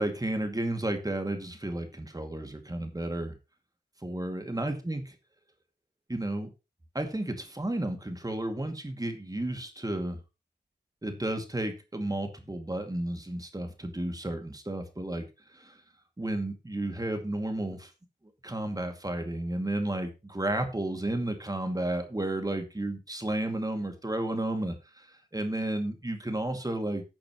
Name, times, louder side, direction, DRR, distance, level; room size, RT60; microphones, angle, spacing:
voice 1, 0.0-3.4 4.0-5.2 6.1-6.5 6.9-10.2 11.0-15.2 15.5-15.7 16.2-17.9 18.4-25.1 25.3-27.0, right 1 dB, 20° right, 5 dB, 2.4 m, -32 dB
14.0 x 8.7 x 3.1 m, 0.27 s
cardioid pair, 55°, 18 cm